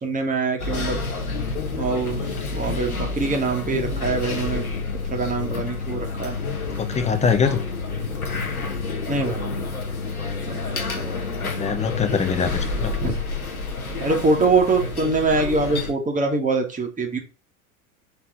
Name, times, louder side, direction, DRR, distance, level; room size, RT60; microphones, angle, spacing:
voice 1, 0.0-1.0 1.8-2.2 2.5-4.6 5.1-6.4 9.1-9.7 10.5-10.6 11.0-11.2 12.9-13.2 14.0-17.2, right 3 dB, 20° right, 2 dB, 2.0 m, -24 dB
sound 1, 0.6-15.9, left 3 dB, 85° left, 1.1 m, -29 dB
voice 2, 6.9-7.6 11.4-12.9, left 6 dB, 15° left, 9 dB, 1.0 m, -23 dB
5.8 x 4.1 x 4.0 m, 0.33 s
figure-of-eight pair, 80°, 42 cm